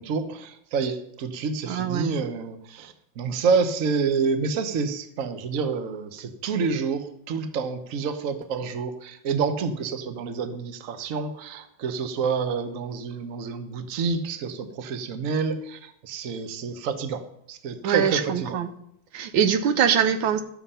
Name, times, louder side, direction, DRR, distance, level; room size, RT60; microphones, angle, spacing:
voice 1, 0.0-17.2 17.5-18.6, right 5 dB, 50° right, 9 dB, 1.2 m, -28 dB
voice 2, 1.7-2.1 17.8-18.7 19.1-20.4, right 8 dB, 80° right, 10 dB, 1.6 m, -23 dB
12.5 x 7.1 x 5.6 m, 0.75 s
omnidirectional pair, 2.1 m